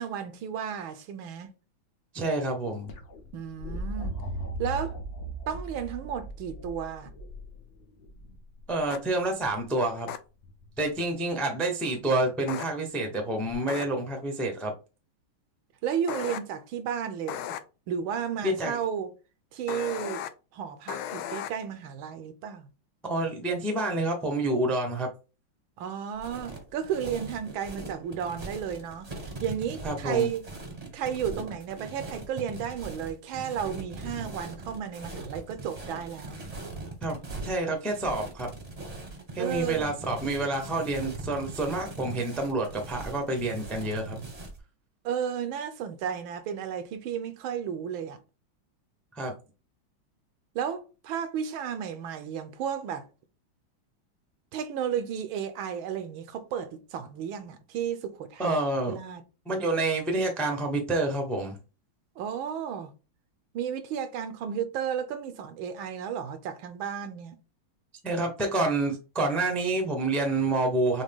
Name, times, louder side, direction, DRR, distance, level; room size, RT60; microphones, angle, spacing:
voice 1, 0.0-1.5 3.3-4.2 4.6-5.0 5.5-7.1 15.8-17.5 17.9-19.1 19.5-20.2 20.5-22.7 25.8-29.1 29.4-30.4 30.9-36.4 39.4-40.0 45.0-48.2 50.5-53.1 54.5-58.5 58.9-59.2 62.2-62.9 63.5-67.4, right 8 dB, 80° right, 1.5 m, -33 dB
voice 2, 2.1-2.9 8.7-10.1 10.8-14.7 18.4-18.8 23.0-25.1 29.8-30.3 37.0-37.2 37.4-38.5 39.3-44.2 49.1-49.3 58.4-59.0 59.5-61.6 68.0-71.0, right 2 dB, ahead, 0.4 m, -28 dB
sound 1, 2.9-8.8 10.4-10.9 13.5-13.6, right 1 dB, 50° left, 0.7 m, -38 dB
sound 2, 8.9-9.0 10.1-10.2 12.5-12.7 13.7-13.8 16.1-16.4 17.3-17.6 19.7-20.3 20.9-21.5, left 11 dB, 85° left, 1.4 m, -35 dB
sound 3, 26.2-44.6, right 2 dB, 30° right, 0.7 m, -40 dB
6.2 x 2.2 x 3.5 m
omnidirectional pair, 2.3 m